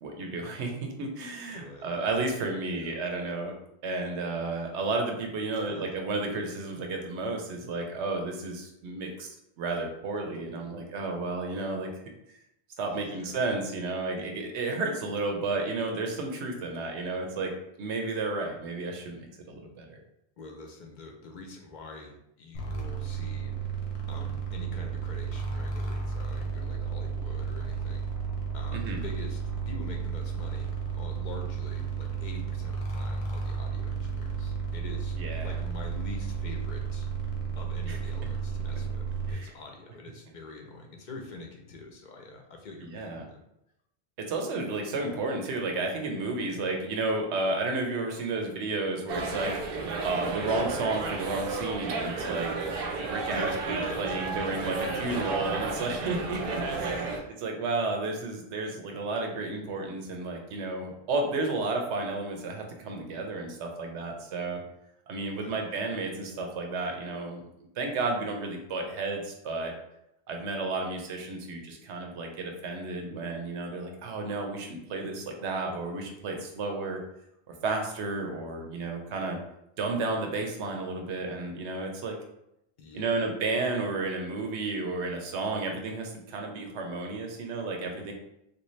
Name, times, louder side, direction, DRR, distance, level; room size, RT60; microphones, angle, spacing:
voice 1, 0.0-3.5 3.8-11.9 12.8-20.0 28.7-29.0 35.2-35.6 37.9-38.0 39.3-39.5 42.8-43.3 44.2-52.5 53.0-56.9 57.4-64.6 65.1-67.4 67.8-69.7 70.3-77.0 77.5-79.4 79.8-82.2 82.9-88.1, right 3 dB, 85° right, 3 dB, 1.0 m, -32 dB
voice 2, 1.5-1.9 2.7-3.0 5.5-5.8 12.8-13.4 20.4-28.1 28.5-35.2 35.4-37.1 37.6-43.4 53.3-54.3 54.9-55.3 55.7-56.0 56.7-57.3 65.3-65.6 82.8-83.3, left 2 dB, 50° left, 2 dB, 0.7 m, -45 dB
sound 1, 22.5-39.3, right 5 dB, 85° left, 1.0 m, -33 dB
sound 2, 49.1-57.2, right 4 dB, 65° right, 0.7 m, -32 dB
3.2 x 2.7 x 3.1 m, 0.82 s
omnidirectional pair, 1.1 m